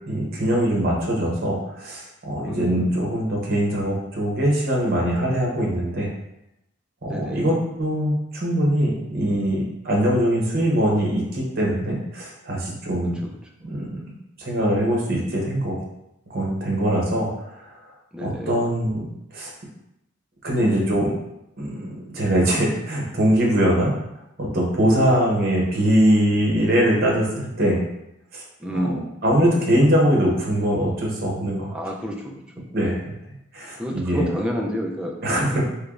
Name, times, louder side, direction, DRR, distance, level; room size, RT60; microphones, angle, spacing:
voice 1, 0.1-6.1 7.0-13.3 13.6-13.9 14.4-15.8 16.3-17.3 17.6-17.7 18.2-19.1 19.3-19.5 20.4-21.1 21.6-23.9 24.4-27.8 28.3-28.4 28.7-28.9 29.2-31.7 32.7-33.1 33.5-34.3 35.2-35.6, equal, 50° right, -2 dB, 0.8 m, -22 dB
voice 2, 2.5-2.9 7.1-7.5 13.2-13.3 18.1-18.5 24.9-25.2 28.6-29.1 31.7-32.4 33.8-35.6, equal, 5° right, -1 dB, 0.3 m, -29 dB
3.3 x 3.0 x 2.4 m, 0.85 s
head